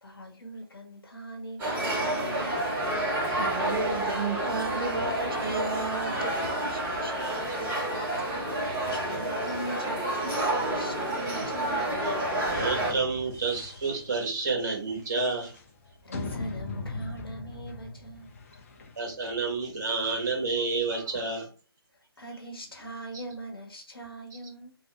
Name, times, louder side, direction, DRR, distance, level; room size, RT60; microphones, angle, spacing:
voice 1, 0.0-2.8 7.9-8.1 8.5-11.8 16.0-18.3 22.2-24.7, right 1 dB, 65° left, 1.3 m, -41 dB
sound 1, 1.6-12.9, right 1 dB, 10° right, 0.9 m, -29 dB
voice 2, 3.3-6.3 6.7-7.1, right 4 dB, 65° right, 0.7 m, -33 dB
sound 2, 8.0-21.2, left 3 dB, 35° left, 0.6 m, -43 dB
voice 3, 12.5-15.5 19.0-21.5, right 4 dB, 45° right, 1.4 m, -29 dB
3.2 x 2.7 x 3.1 m
figure-of-eight pair, 140°, 13 cm